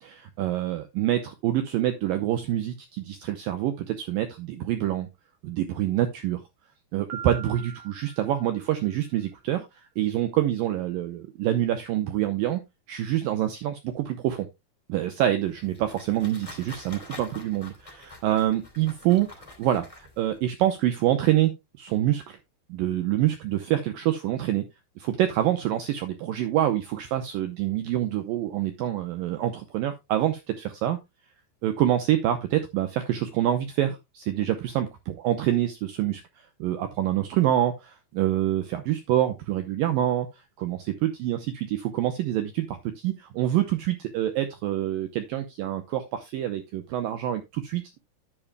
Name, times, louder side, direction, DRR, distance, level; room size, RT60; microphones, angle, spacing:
voice 1, 0.0-5.1 5.4-6.4 6.9-9.7 10.0-12.6 12.9-14.5 14.9-19.3 19.6-21.5 21.8-22.4 22.7-24.6 25.0-31.0 31.6-40.3 40.6-48.0, right 12 dB, 90° right, 8 dB, 2.0 m, -26 dB
Piano, 7.1-9.0, right 7 dB, 70° right, 3.6 m, -42 dB
sound 1, 15.4-20.4, left 2 dB, 10° left, 2.0 m, -46 dB
10.5 x 9.9 x 2.2 m, 0.21 s
omnidirectional pair, 5.0 m